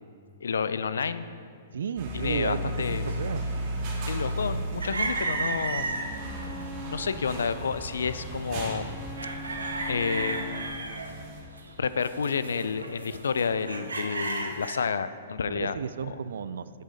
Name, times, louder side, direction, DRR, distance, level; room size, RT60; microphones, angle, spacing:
voice 1, 0.4-1.2 2.1-3.0 4.1-6.1 6.9-8.9 9.9-10.7 11.8-15.7, left 5 dB, 80° left, 13 dB, 0.3 m, -30 dB
voice 2, 1.7-3.4 15.4-16.7, right 7 dB, 70° right, 15 dB, 0.3 m, -33 dB
sound 1, 2.0-11.4, equal, 40° right, 1.9 m, -35 dB
sound 2, 4.8-6.7 7.2-7.5 8.0-8.8 9.1-14.8, right 3 dB, 90° right, 0.9 m, -34 dB
Bowed string instrument, 5.5-10.9, left 4 dB, 20° left, 0.5 m, -43 dB
8.1 x 6.3 x 4.1 m, 2.3 s
hypercardioid pair, 120°, 0 cm